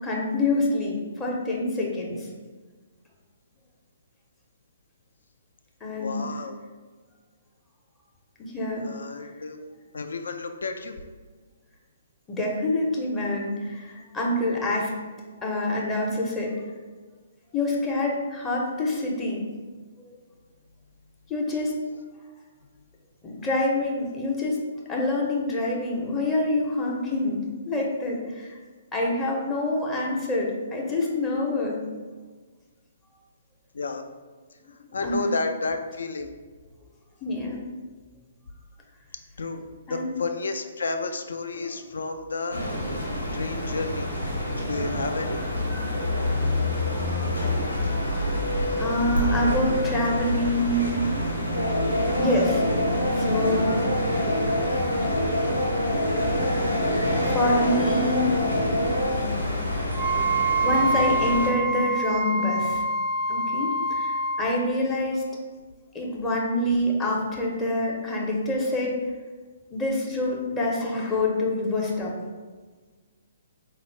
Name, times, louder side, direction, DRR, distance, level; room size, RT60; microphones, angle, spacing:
voice 1, 0.0-2.3 5.8-6.2 8.4-8.9 12.3-14.9 15.4-16.6 17.5-19.5 20.0-20.2 21.3-21.8 23.2-24.6 24.9-28.6 28.9-31.9 35.0-35.2 37.2-37.7 39.9-40.2 41.5-41.9 48.5-51.0 52.1-52.6 53.1-54.0 57.3-58.4 60.6-62.8 63.3-65.2 65.9-69.0 69.7-72.1, left 1 dB, 15° left, -3 dB, 0.6 m, -26 dB
voice 2, 5.9-6.6 8.8-9.6 9.9-11.0 33.7-34.1 34.9-36.4 39.4-42.6 43.3-44.1 44.6-45.4, left 3 dB, 60° left, 6 dB, 0.3 m, -31 dB
sound 1, 42.5-61.5, left 1 dB, 85° left, 0.8 m, -28 dB
sound 2, 51.5-59.5, left 1 dB, 85° right, 0.5 m, -27 dB
Wind instrument woodwind instrument, 59.9-64.5, right 2 dB, 25° right, 0.3 m, -25 dB
4.2 x 2.4 x 3.1 m, 1.4 s
figure-of-eight pair, 125°, 0 cm